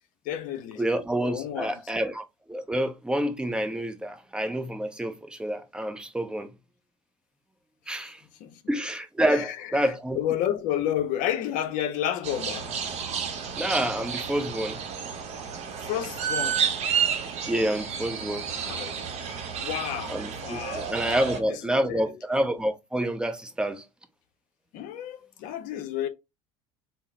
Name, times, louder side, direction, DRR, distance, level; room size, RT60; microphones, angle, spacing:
voice 1, 0.2-0.8 1.2-2.0 8.4-8.6 9.3-12.7 15.8-16.7 18.6-18.9 19.5-22.1 24.7-26.1, left 11 dB, 50° left, 0.6 m, -31 dB
voice 2, 0.8-6.5 7.9-8.2 8.7-10.2 13.6-14.8 16.9-17.1 17.5-18.5 20.1-23.9, right 1 dB, 5° right, 0.6 m, -28 dB
sound 1, 12.2-21.4, right 7 dB, 40° right, 0.8 m, -31 dB
3.7 x 2.0 x 3.5 m
figure-of-eight pair, 70°, 17 cm